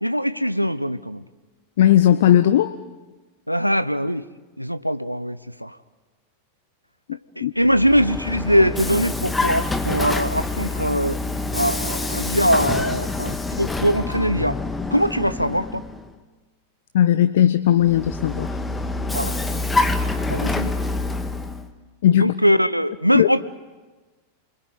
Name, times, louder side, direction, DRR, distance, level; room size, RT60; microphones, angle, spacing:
voice 1, 0.0-1.2 3.5-4.2 4.6-5.8 7.4-11.2 11.5-14.6 14.9-15.8 19.1-19.3 20.3-20.7 22.1-23.4, equal, 90° right, 14 dB, 0.9 m, -21 dB
voice 2, 1.8-2.8 7.4-7.5 16.9-18.5 22.0-22.3 23.1-23.3, left 11 dB, 55° left, 13 dB, 0.8 m, -17 dB
Vehicle, 7.6-16.1 17.8-21.7, left 2 dB, 10° left, 1.7 m, -26 dB
29.0 x 21.5 x 9.4 m, 1.3 s
figure-of-eight pair, 90°, 0 cm